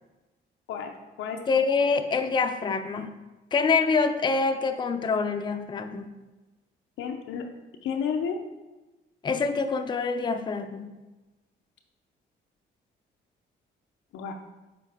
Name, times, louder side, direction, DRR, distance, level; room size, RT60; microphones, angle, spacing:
voice 1, 0.7-1.4 7.0-7.5 7.8-8.4 14.1-14.3, left 6 dB, 85° left, 3 dB, 0.6 m, -31 dB
voice 2, 1.5-3.1 3.5-6.1 9.2-11.0, left 4 dB, 25° left, 7 dB, 0.4 m, -26 dB
8.1 x 3.4 x 3.5 m, 1.1 s
cardioid pair, 90°, 20 cm